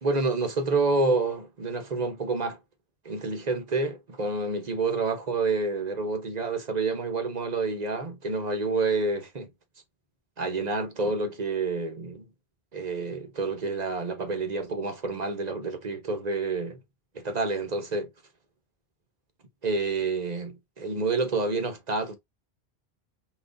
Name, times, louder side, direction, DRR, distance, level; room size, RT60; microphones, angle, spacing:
voice 1, 0.0-2.6 3.0-9.5 10.4-12.2 12.7-16.8 17.1-18.1 19.6-22.1, right 3 dB, 40° right, 1.0 m, -28 dB
4.9 x 3.1 x 2.5 m
omnidirectional pair, 1.1 m